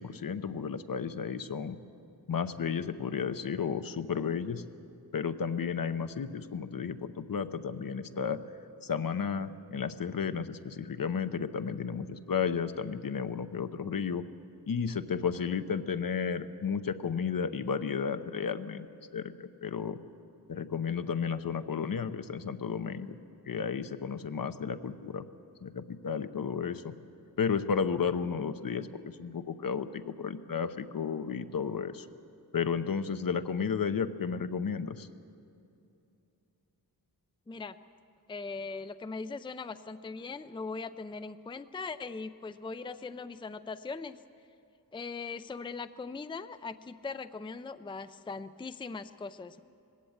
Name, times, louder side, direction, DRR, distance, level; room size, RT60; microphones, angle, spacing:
voice 1, 0.0-1.8 2.3-4.6 5.1-8.4 8.8-14.2 14.7-18.9 19.1-20.0 20.5-23.2 23.5-25.2 25.6-26.9 27.4-32.1 32.5-35.1, left 6 dB, 60° left, 10 dB, 0.9 m, -33 dB
voice 2, 38.3-44.2 44.9-49.6, left 4 dB, 15° left, 11 dB, 0.5 m, -40 dB
20.5 x 16.0 x 8.8 m, 2.7 s
wide cardioid pair, 90°, 38 cm